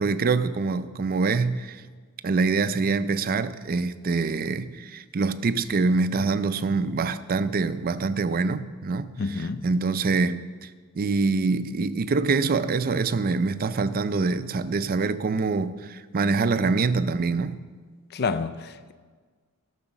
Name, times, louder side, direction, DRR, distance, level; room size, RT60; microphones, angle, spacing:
voice 1, 0.0-1.8 2.2-9.1 9.6-10.7 11.0-17.6, right 4 dB, 40° right, 0.4 m, -25 dB
voice 2, 9.2-9.7 18.1-18.9, left 4 dB, 45° left, 0.4 m, -29 dB
12.5 x 6.5 x 6.0 m
head